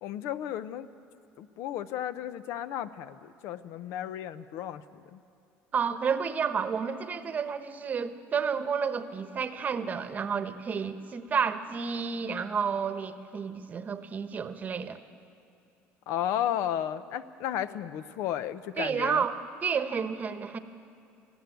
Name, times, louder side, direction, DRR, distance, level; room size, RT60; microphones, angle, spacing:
voice 1, 0.0-0.9 1.4-5.2 16.1-19.2, left 11 dB, 70° left, 13 dB, 0.7 m, -33 dB
voice 2, 5.7-15.0 18.8-20.6, right 6 dB, 30° right, 10 dB, 1.0 m, -31 dB
18.5 x 15.0 x 9.3 m, 2.5 s
cardioid pair, 120°, 5 cm